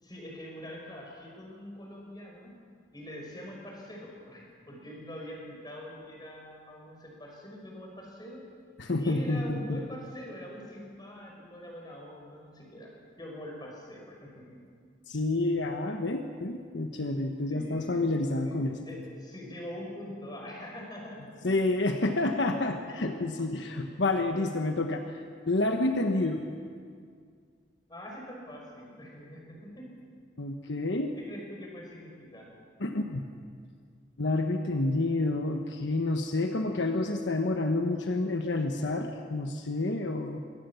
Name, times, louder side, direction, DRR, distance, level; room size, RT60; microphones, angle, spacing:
voice 1, 0.0-2.5 2.9-8.5 9.0-12.9 13.2-14.7 17.5-18.0 18.4-21.5 23.6-24.0 26.1-26.3 27.9-30.0 31.2-32.5, left 1 dB, 20° left, -1 dB, 5.6 m, -44 dB
voice 2, 8.8-9.8 15.1-18.8 21.4-25.0 25.5-26.4 30.4-31.1 32.8-33.2 34.2-40.4, left 2 dB, 70° left, 4 dB, 1.2 m, -29 dB
23.5 x 17.5 x 7.1 m, 2.1 s
head